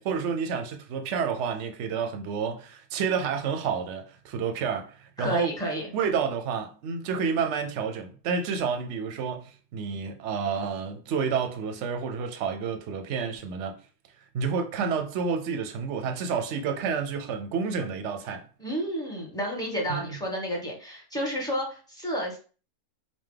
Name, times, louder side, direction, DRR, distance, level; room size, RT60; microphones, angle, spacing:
voice 1, 0.0-5.5 5.9-13.8 14.3-18.4 19.9-20.2, right 6 dB, 60° right, 0.9 m, -29 dB
voice 2, 5.2-5.9 18.6-22.4, right 1 dB, 5° left, 1.1 m, -30 dB
5.1 x 2.3 x 3.8 m
omnidirectional pair, 1.5 m